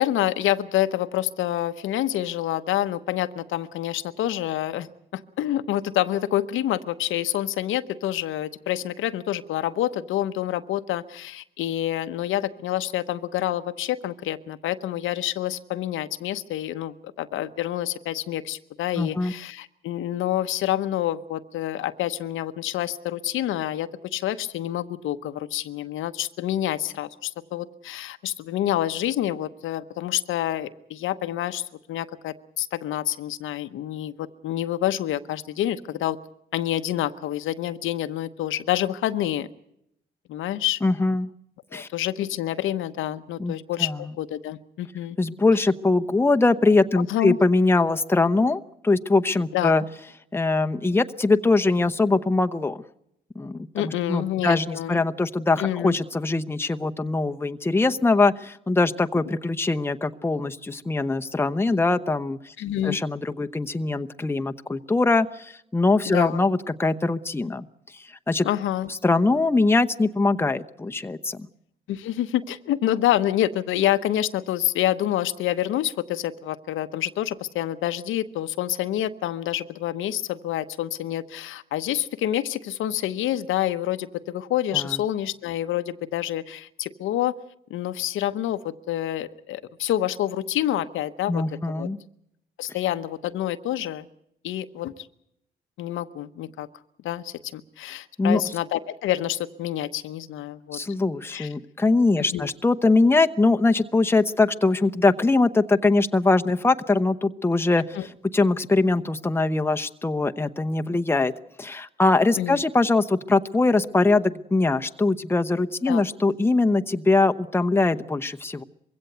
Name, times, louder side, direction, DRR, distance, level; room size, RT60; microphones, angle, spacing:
voice 1, 0.0-4.9 5.1-36.2 36.5-39.5 40.3-40.8 41.7-45.2 47.0-47.4 49.5-49.7 53.7-55.0 55.6-56.0 62.6-63.0 66.1-66.4 68.4-68.9 71.9-87.3 87.7-91.4 91.8-91.9 92.6-94.1 94.4-94.9 95.8-96.7 97.0-100.8 101.3-101.5 102.2-102.5 107.9-108.1 112.4-112.6 115.9-116.0, left 12 dB, 85° left, 10 dB, 0.9 m, -27 dB
voice 2, 19.0-19.3 40.8-41.3 41.7-41.9 43.4-44.0 45.2-49.8 50.3-52.8 53.4-62.5 62.8-67.7 68.3-68.5 69.0-71.5 84.7-84.9 91.3-92.0 98.2-98.4 100.7-107.8 108.3-111.3 111.6-118.6, left 3 dB, 10° left, 7 dB, 0.9 m, -22 dB
22.0 x 16.5 x 8.0 m, 0.78 s
cardioid pair, 90°, 20 cm